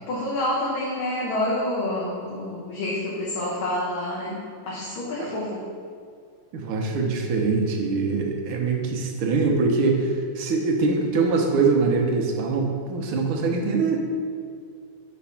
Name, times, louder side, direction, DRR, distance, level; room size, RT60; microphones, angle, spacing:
voice 1, 0.1-4.4 4.7-5.6, left 1 dB, 75° left, -5 dB, 1.8 m, -28 dB
voice 2, 6.5-14.0, right 4 dB, 80° right, 2 dB, 1.7 m, -23 dB
5.8 x 4.2 x 5.7 m, 2.2 s
omnidirectional pair, 2.3 m